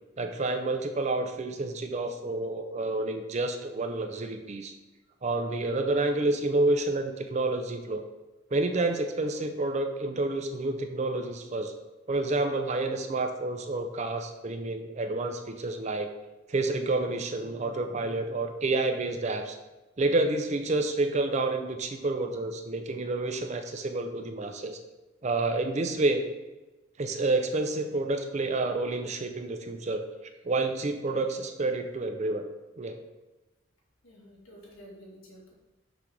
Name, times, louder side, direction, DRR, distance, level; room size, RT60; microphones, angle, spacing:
voice 1, 0.2-4.7 5.2-8.0 8.5-11.7 12.1-16.1 16.5-19.6 20.0-24.8 25.2-26.2 27.0-30.0 30.5-32.5 32.8-33.0, right 2 dB, 35° right, 6 dB, 0.4 m, -29 dB
voice 2, 34.0-35.5, equal, 75° left, -3 dB, 1.8 m, -50 dB
6.0 x 3.3 x 5.9 m, 1.1 s
head